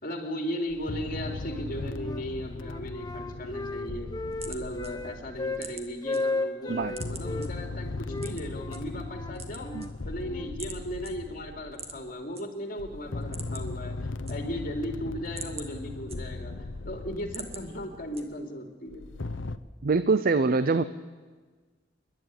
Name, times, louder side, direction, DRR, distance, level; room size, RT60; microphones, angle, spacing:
voice 1, 0.0-4.1 4.4-9.7 10.0-14.0 14.3-16.5 16.8-19.0, equal, 50° left, 4 dB, 3.2 m, -36 dB
sound 1, 0.7-5.9 6.7-12.1 12.8-18.2 18.9-19.6, left 2 dB, 80° left, 0.8 m, -38 dB
Wind instrument woodwind instrument, 1.4-2.2 2.6-5.7 6.0-7.5 8.1-10.6, left 3 dB, 20° left, 1.0 m, -35 dB
sound 2, 3.9-6.2 6.6-7.5 8.2-8.8 9.2-10.2 10.6-10.8 11.0-11.1 11.7-12.4 12.8-12.9 13.2-13.8 14.1-14.7 15.1-16.6 17.0-17.6 18.1-18.6, right 5 dB, 35° right, 2.0 m, -43 dB
voice 2, 19.8-20.8, right 4 dB, 50° right, 14 dB, 0.6 m, -24 dB
28.5 x 11.5 x 9.8 m, 1.4 s
head